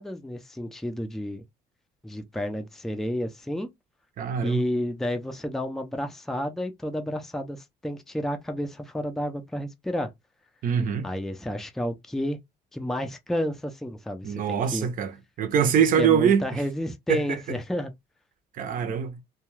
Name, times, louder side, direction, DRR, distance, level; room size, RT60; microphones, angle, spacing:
voice 1, 0.0-1.4 2.0-3.7 4.4-10.1 11.0-12.4 12.7-14.9 16.0-17.9, equal, ahead, 0.4 m, -31 dB
voice 2, 4.2-4.6 10.6-11.1 14.2-15.1 15.4-16.6 17.1-17.2 18.6-19.2, right 7 dB, 55° right, 0.7 m, -23 dB
2.3 x 2.3 x 3.1 m
cardioid pair, 110°, 17 cm